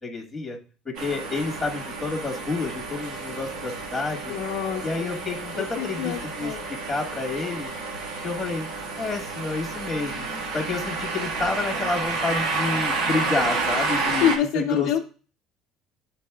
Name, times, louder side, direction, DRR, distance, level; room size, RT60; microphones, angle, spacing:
voice 1, 0.0-0.6 0.8-4.3 4.8-6.5 6.9-7.7 8.2-8.7 9.0-10.3 10.5-15.0, left 3 dB, 5° left, 1 dB, 1.4 m, -29 dB
sound 1, 0.9-14.4, right 3 dB, 70° right, 1.4 m, -30 dB
voice 2, 4.3-5.2 5.5-6.7 14.0-15.0, left 10 dB, 75° left, 0 dB, 0.6 m, -27 dB
10.0 x 4.1 x 2.3 m, 0.37 s
cardioid pair, 135°, 0 cm